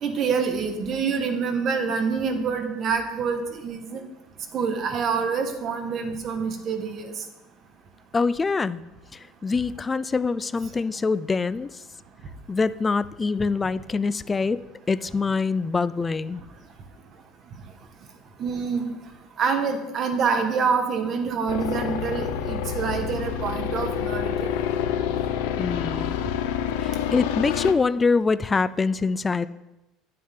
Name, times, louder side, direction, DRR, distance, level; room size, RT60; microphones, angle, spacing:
voice 1, 0.0-4.0 4.5-7.1 18.4-18.9 19.4-24.5, right 5 dB, 35° right, 5 dB, 1.4 m, -26 dB
voice 2, 8.1-8.8 9.1-11.8 12.5-14.6 14.9-16.4 25.6-26.2 26.8-29.5, left 4 dB, 15° left, 16 dB, 0.3 m, -24 dB
sound 1, 21.5-27.7, left 9 dB, 85° left, 0.7 m, -28 dB
9.6 x 9.4 x 3.7 m, 0.97 s
cardioid pair, 145°, 0 cm